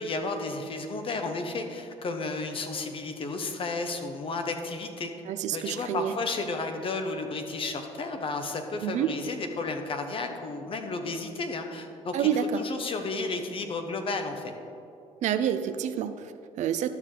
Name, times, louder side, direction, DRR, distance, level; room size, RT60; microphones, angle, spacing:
voice 1, 0.0-5.1 5.5-12.3 12.6-14.5, left 3 dB, 45° left, 5 dB, 1.1 m, -33 dB
voice 2, 5.3-6.1 8.8-9.1 12.1-12.6 15.2-16.9, right 9 dB, 65° right, 10 dB, 0.5 m, -28 dB
12.0 x 6.4 x 3.8 m, 2.7 s
supercardioid pair, 80°, 13 cm